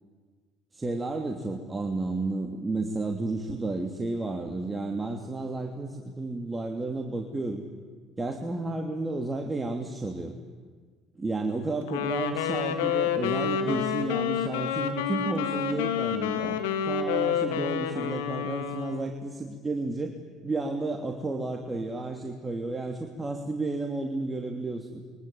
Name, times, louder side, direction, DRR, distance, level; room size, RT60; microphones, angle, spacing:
voice 1, 0.7-7.6 8.2-10.4 11.2-20.1 20.4-25.0, right 2 dB, 20° right, 3 dB, 3.0 m, -32 dB
Wind instrument woodwind instrument, 11.9-19.1, left 8 dB, 80° left, 2.4 m, -29 dB
28.5 x 24.0 x 8.8 m, 1.5 s
hypercardioid pair, 65°, 0 cm